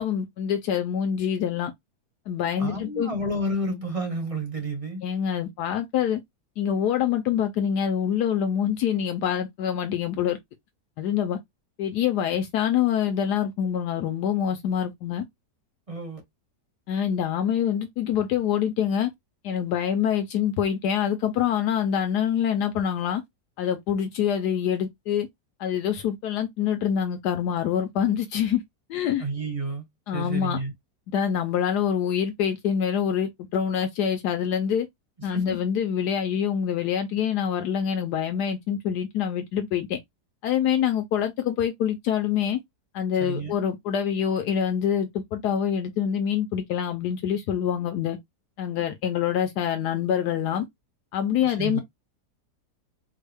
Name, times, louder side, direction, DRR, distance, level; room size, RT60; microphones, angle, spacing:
voice 1, 0.0-1.7 2.3-3.1 5.0-6.2 6.6-10.4 11.0-11.4 11.8-15.2 16.9-19.1 19.4-23.2 23.6-25.3 25.6-28.6 28.9-29.2 30.1-30.6 31.1-34.9 35.2-40.0 40.4-42.6 42.9-48.2 48.6-50.6 51.1-51.8, left 9 dB, 80° left, 1.2 m, -25 dB
voice 2, 2.6-5.0 15.9-16.2 29.2-29.9 30.1-30.7 35.2-35.6 43.2-43.5 48.7-48.8 51.4-51.8, right 1 dB, 25° right, 1.0 m, -30 dB
4.4 x 2.1 x 3.3 m
omnidirectional pair, 1.7 m